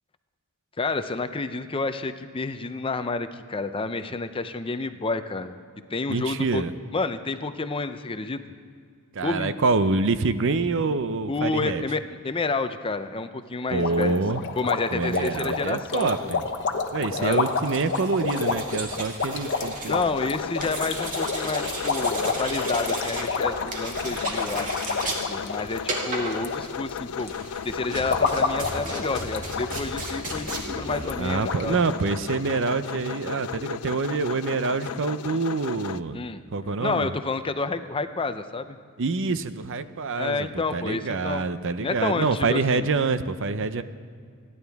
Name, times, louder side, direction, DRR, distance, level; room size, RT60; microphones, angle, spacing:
voice 1, 0.8-5.5 5.9-6.6 6.9-8.4 9.2-9.6 11.3-14.2 14.6-16.3 17.0-17.5 19.9-24.7 25.1-27.3 27.6-31.8 36.1-36.4 36.8-38.8 40.1-41.4 41.8-42.9, left 3 dB, 25° left, 10 dB, 0.6 m, -29 dB
voice 2, 6.1-6.7 9.1-11.8 13.7-14.4 14.9-16.5 16.9-20.0 31.2-36.2 36.5-37.1 39.0-43.8, right 3 dB, 60° right, 12 dB, 0.6 m, -26 dB
sound 1, 13.8-26.6 26.8-27.3 27.8-29.7 30.0-30.1 30.5-30.6 31.1-31.2 31.4-31.6, left 4 dB, 55° left, 1.0 m, -29 dB
sound 2, 15.9-31.9, right 2 dB, 40° right, 2.1 m, -36 dB
sound 3, 20.1-36.0, left 8 dB, 80° left, 0.4 m, -35 dB
29.0 x 11.0 x 3.5 m, 2.2 s
head